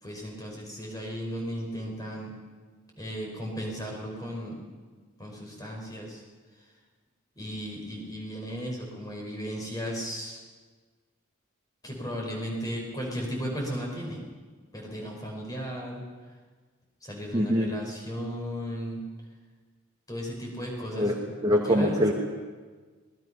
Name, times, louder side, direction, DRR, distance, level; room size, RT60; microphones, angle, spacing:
voice 1, 0.0-2.3 3.0-4.6 5.2-6.2 7.4-10.4 11.8-14.2 14.7-16.0 17.0-19.0 20.1-21.1 21.5-22.1, equal, 15° left, 0 dB, 5.5 m, -35 dB
voice 2, 17.3-17.7 20.9-22.1, equal, 20° right, -1 dB, 1.9 m, -24 dB
26.5 x 21.0 x 5.8 m, 1.4 s
head